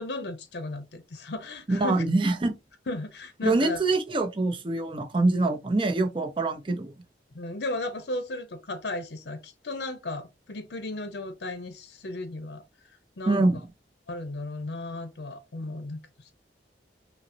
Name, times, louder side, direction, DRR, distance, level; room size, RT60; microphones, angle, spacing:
voice 1, 0.0-2.0 2.9-3.9 7.3-12.6 13.2-13.4 14.1-16.0, left 2 dB, 65° left, 0.6 m, -35 dB
voice 2, 1.7-2.5 3.4-6.9 13.3-13.6, right 2 dB, 30° right, 0.5 m, -24 dB
5.6 x 2.0 x 2.6 m
head